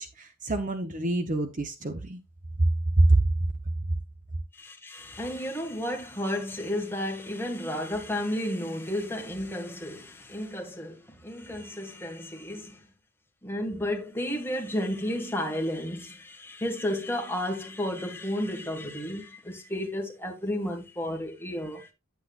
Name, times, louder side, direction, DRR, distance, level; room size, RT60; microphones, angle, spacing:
voice 1, 0.0-2.2 2.6-3.2, right 2 dB, 35° right, 1.0 m, -25 dB
voice 2, 4.6-11.0 11.2-12.8 13.4-21.9, left 1 dB, 10° left, 2.1 m, -32 dB
9.4 x 8.3 x 2.5 m
head